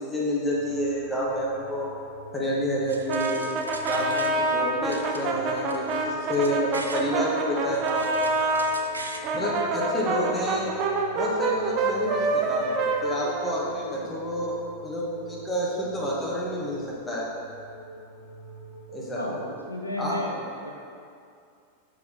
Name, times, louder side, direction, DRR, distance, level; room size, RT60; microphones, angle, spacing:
voice 1, 0.0-1.9 2.3-3.5 3.8-8.6 9.3-10.7 11.1-17.3 18.9-19.2 20.0-20.2, equal, 10° left, -5 dB, 1.5 m, -29 dB
sound 1, 0.5-19.5, equal, 60° left, 1.4 m, -45 dB
sound 2, 2.9-4.6 4.9-7.1 7.5-9.3, right 2 dB, 80° right, 0.4 m, -41 dB
Brass instrument, 3.1-8.7 9.2-14.0, right 3 dB, 35° right, 0.6 m, -27 dB
voice 2, 19.1-20.7, left 1 dB, 85° left, -1 dB, 0.6 m, -33 dB
5.7 x 5.1 x 4.0 m, 2.4 s
figure-of-eight pair, 90°, 0 cm